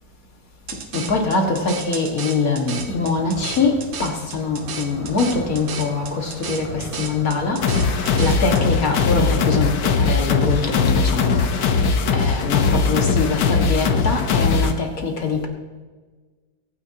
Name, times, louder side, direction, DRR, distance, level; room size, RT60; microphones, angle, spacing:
sound 1, 0.7-8.6, right 6 dB, 85° right, 1.9 m, -34 dB
voice 1, 0.9-15.5, left 4 dB, 50° left, 2 dB, 2.2 m, -23 dB
sound 2, 2.7-9.3 9.6-10.4 10.8-12.5, equal, 10° left, 4.3 m, -39 dB
sound 3, 7.6-14.7, left 5 dB, 65° left, 1.6 m, -20 dB
23.5 x 9.6 x 2.9 m, 1.4 s
omnidirectional pair, 2.1 m